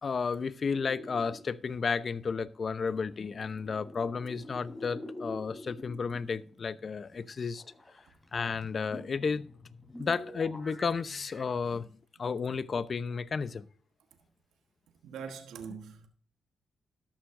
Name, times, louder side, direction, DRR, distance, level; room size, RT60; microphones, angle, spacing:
voice 1, 0.0-7.6 8.3-9.5 10.0-11.9 12.2-13.7, left 5 dB, 50° left, 0.7 m, -32 dB
sound 1, 0.7-11.4, left 1 dB, 20° left, 3.6 m, -47 dB
voice 2, 15.0-16.1, right 6 dB, 85° right, 1.2 m, -42 dB
13.0 x 11.5 x 2.6 m
cardioid pair, 70°, 0 cm